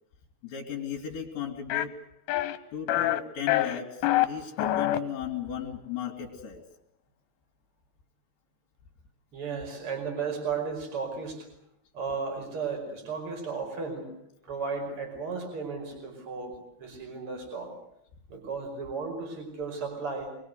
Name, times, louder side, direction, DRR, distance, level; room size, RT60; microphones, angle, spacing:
voice 1, 0.4-1.9 2.7-6.6, left 8 dB, 65° left, -1 dB, 4.4 m, -36 dB
sound 1, 1.7-1.9 2.3-2.6 2.9-3.2 3.5-4.3 4.6-5.0, left 14 dB, 85° left, 3.6 m, -25 dB
voice 2, 9.3-11.5 11.9-14.0 14.5-17.7 18.3-20.3, right 5 dB, 30° right, 3 dB, 5.7 m, -34 dB
26.0 x 21.5 x 8.1 m, 0.75 s
omnidirectional pair, 5.5 m